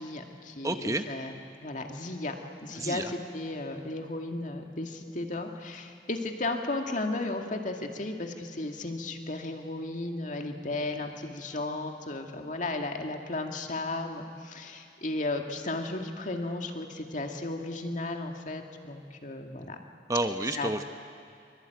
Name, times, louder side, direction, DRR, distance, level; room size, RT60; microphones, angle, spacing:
voice 1, 0.0-2.4 2.6-19.8 20.5-20.7, left 2 dB, 45° left, 4 dB, 2.2 m, -34 dB
voice 2, 0.6-1.0 2.8-3.1 20.1-20.8, right 2 dB, 20° right, 7 dB, 0.9 m, -29 dB
24.5 x 24.5 x 9.3 m, 2.3 s
head